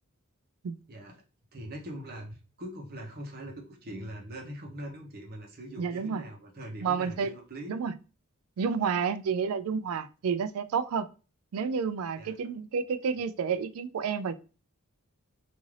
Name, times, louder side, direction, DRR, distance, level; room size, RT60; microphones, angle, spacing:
voice 1, 1.5-7.7 12.1-12.4, equal, 45° right, 0 dB, 0.9 m, -42 dB
voice 2, 5.8-6.2 6.8-7.3 7.7-8.0 8.6-11.1 11.5-14.4, right 6 dB, 75° right, 12 dB, 0.3 m, -30 dB
3.6 x 2.6 x 3.2 m, 0.34 s
head